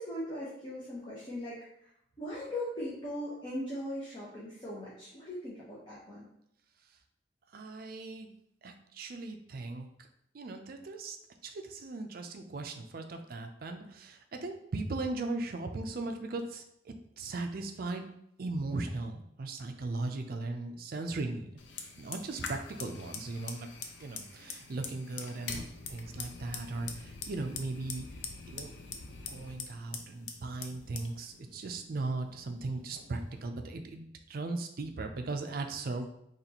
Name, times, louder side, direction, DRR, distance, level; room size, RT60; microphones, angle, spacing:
voice 1, 0.0-1.6 2.2-6.3, left 1 dB, 25° left, -7 dB, 0.9 m, -39 dB
voice 2, 7.5-8.3 8.6-9.9 10.3-11.2 11.4-18.1 18.4-21.5 22.0-23.7 24.0-25.6 25.9-28.1 28.5-28.7 29.3-36.1, right 2 dB, 55° right, 5 dB, 0.4 m, -38 dB
Fire, 21.6-33.4, left 5 dB, 80° left, 0.5 m, -44 dB
4.1 x 3.1 x 2.9 m, 0.76 s
head